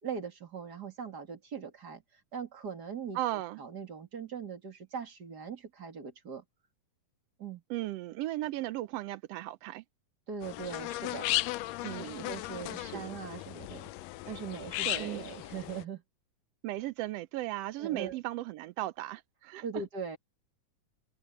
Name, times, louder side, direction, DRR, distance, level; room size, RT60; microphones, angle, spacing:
voice 1, 0.0-2.0 2.3-6.4 7.4-7.6 10.3-11.3 11.9-13.9 14.2-16.0 17.8-18.2 19.6-20.2, right 6 dB, 30° right, 3.0 m, -40 dB
voice 2, 3.1-3.6 7.7-9.8 11.8-12.3 12.8-13.2 14.9-15.3 16.6-19.6, right 16 dB, 85° right, 1.4 m, -36 dB
sound 1, 10.4-15.8, left 17 dB, 90° left, 1.5 m, -36 dB
omnidirectional pair, 3.6 m